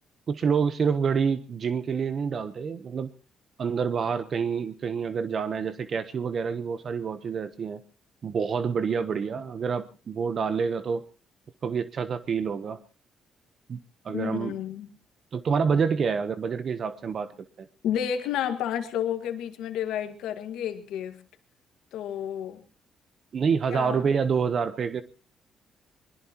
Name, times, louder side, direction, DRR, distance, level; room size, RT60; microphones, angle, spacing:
voice 1, 0.3-3.1 3.6-7.8 8.2-11.0 11.6-12.8 13.7-13.8 14.0-14.6 15.3-17.3 17.6-17.7 23.3-25.0, right 6 dB, 50° right, 12 dB, 0.9 m, -27 dB
voice 2, 14.1-14.9 17.8-21.2 21.9-22.6 23.7-24.0, left 9 dB, 90° left, 7 dB, 1.8 m, -31 dB
22.0 x 21.5 x 3.0 m, 0.35 s
cardioid pair, 90°, 0 cm